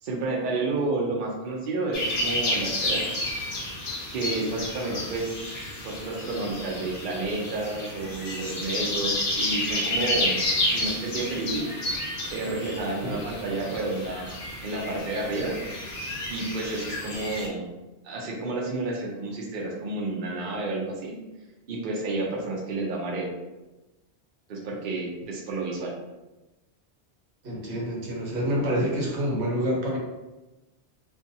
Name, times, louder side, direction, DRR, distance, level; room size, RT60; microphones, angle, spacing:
voice 1, 0.0-3.1 4.1-5.4 5.8-10.4 10.7-11.7 12.3-14.4 14.6-15.6 16.3-17.7 18.0-21.1 21.7-23.3 24.5-25.9, right 2 dB, 55° right, -2 dB, 0.6 m, -30 dB
sound 1, 1.9-17.5, left 1 dB, 60° left, 0.7 m, -30 dB
voice 2, 27.4-30.0, equal, 75° right, -2 dB, 1.0 m, -27 dB
2.5 x 2.2 x 2.6 m, 1.1 s
omnidirectional pair, 1.2 m